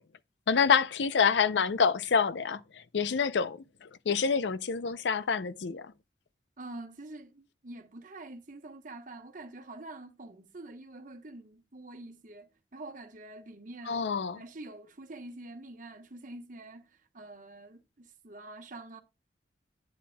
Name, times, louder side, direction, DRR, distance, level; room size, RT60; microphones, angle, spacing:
voice 1, 0.5-5.9 13.9-14.4, left 6 dB, 80° left, 0.5 m, -27 dB
voice 2, 6.6-14.1 14.3-19.0, right 2 dB, 50° right, 1.1 m, -46 dB
10.0 x 8.2 x 2.2 m
head